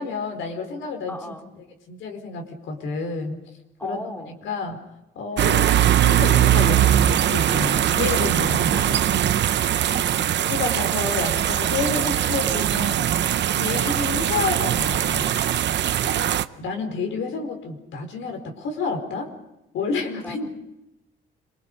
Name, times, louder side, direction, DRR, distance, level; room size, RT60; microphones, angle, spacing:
voice 1, 0.0-1.2 1.9-3.4 3.8-4.0 4.4-4.8 5.1-5.7 6.0-9.2 10.4-13.0 13.6-15.4 16.6-19.3 19.7-20.5, left 4 dB, 80° left, 4 dB, 4.5 m, -29 dB
voice 2, 1.1-1.7 3.8-4.5 9.9-10.3 16.0-16.4 20.1-20.5, left 1 dB, 10° left, 3 dB, 2.7 m, -38 dB
sound 1, 5.4-16.4, right 11 dB, 65° right, 0.8 m, -21 dB
26.5 x 21.0 x 6.8 m, 0.91 s
cardioid pair, 90°, 20 cm